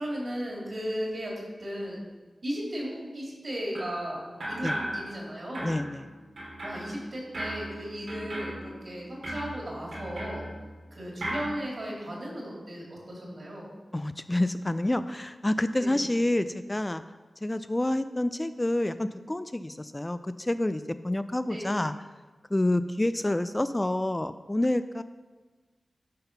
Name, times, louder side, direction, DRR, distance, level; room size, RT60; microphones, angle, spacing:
voice 1, 0.0-2.0 2.4-5.8 6.6-10.5 10.9-13.7 15.7-16.0 21.5-21.8, equal, 55° right, -3 dB, 2.8 m, -36 dB
sound 1, 3.7-4.0 4.4-5.3 5.5-10.9 11.2-11.6, right 1 dB, 85° right, 2.5 m, -37 dB
voice 2, 5.6-6.0 13.9-17.0 17.4-21.9 22.5-25.0, left 1 dB, 20° left, 11 dB, 0.3 m, -28 dB
11.5 x 3.9 x 5.3 m, 1.3 s
wide cardioid pair, 65°, 0 cm